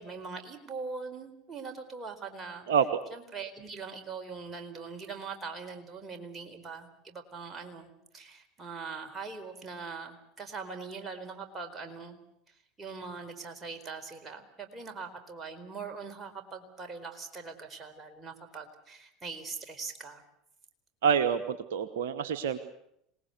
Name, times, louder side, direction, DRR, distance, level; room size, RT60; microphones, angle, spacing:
voice 1, 0.0-2.7 3.1-12.2 12.8-20.2, right 4 dB, 25° right, 4 dB, 4.4 m, -42 dB
voice 2, 21.0-22.6, right 7 dB, 65° right, 9 dB, 1.1 m, -27 dB
26.5 x 19.5 x 8.1 m, 0.77 s
figure-of-eight pair, 75°, 0 cm